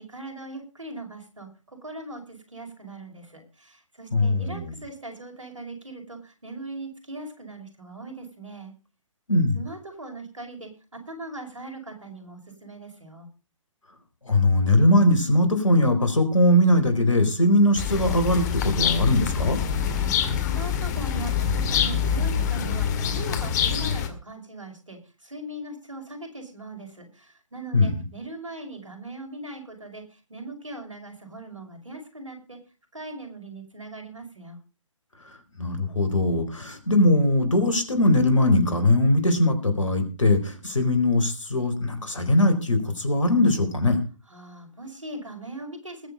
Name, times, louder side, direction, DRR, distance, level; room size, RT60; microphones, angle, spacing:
voice 1, 0.0-8.7 9.5-13.3 19.7-32.6 32.9-34.6 44.3-46.1, right 2 dB, 75° right, 3 dB, 5.7 m, -40 dB
voice 2, 4.1-4.7 9.3-9.6 14.3-19.6 27.7-28.0 35.6-44.0, left 1 dB, 70° left, 8 dB, 4.1 m, -21 dB
sound 1, 17.8-24.1, left 7 dB, 35° left, 2.2 m, -25 dB
20.5 x 7.5 x 5.2 m, 0.34 s
figure-of-eight pair, 135°, 17 cm